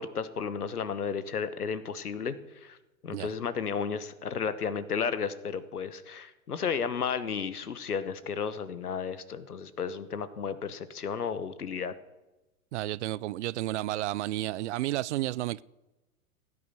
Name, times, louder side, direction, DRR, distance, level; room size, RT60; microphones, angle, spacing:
voice 1, 0.0-2.8 3.0-11.9, left 6 dB, 90° left, 1.3 m, -33 dB
voice 2, 12.7-15.6, right 15 dB, 55° right, 0.5 m, -31 dB
16.0 x 9.5 x 6.8 m
hypercardioid pair, 110°, 44 cm